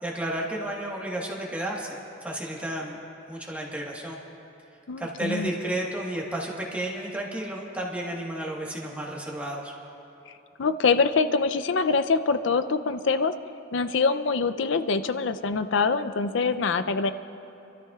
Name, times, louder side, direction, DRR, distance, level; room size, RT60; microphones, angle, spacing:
voice 1, 0.0-4.2 5.0-9.7, right 1 dB, 5° right, -3 dB, 1.4 m, -32 dB
voice 2, 4.9-5.5 10.6-13.3 13.7-17.1, left 4 dB, 65° left, 10 dB, 0.5 m, -24 dB
28.0 x 13.0 x 2.4 m, 2.8 s
head